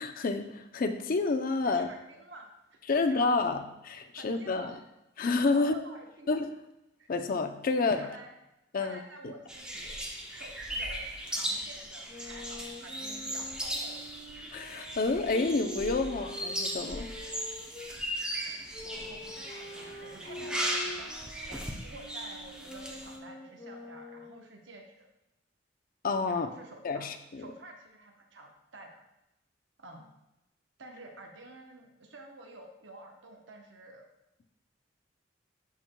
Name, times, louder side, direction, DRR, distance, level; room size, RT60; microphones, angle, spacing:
voice 1, 0.0-1.9 2.9-4.7 5.2-5.8 6.3-6.5 7.1-8.1 8.7-9.0 14.5-17.1 26.0-26.5 26.8-27.4, left 3 dB, 50° left, 7 dB, 0.5 m, -29 dB
voice 2, 1.6-3.3 4.1-4.8 5.5-6.3 7.0-7.1 8.0-8.3 8.7-10.0 10.3-14.0 16.9-17.3 18.8-25.1 26.3-27.1 27.4-29.0 29.8-30.1 30.8-34.0, right 2 dB, 75° right, 2 dB, 0.9 m, -50 dB
sound 1, 9.5-23.2, equal, 5° right, 0.6 m, -37 dB
Wind instrument woodwind instrument, 12.0-17.9 18.7-24.5, left 1 dB, 15° left, 2.4 m, -45 dB
11.5 x 4.5 x 2.2 m, 0.89 s
head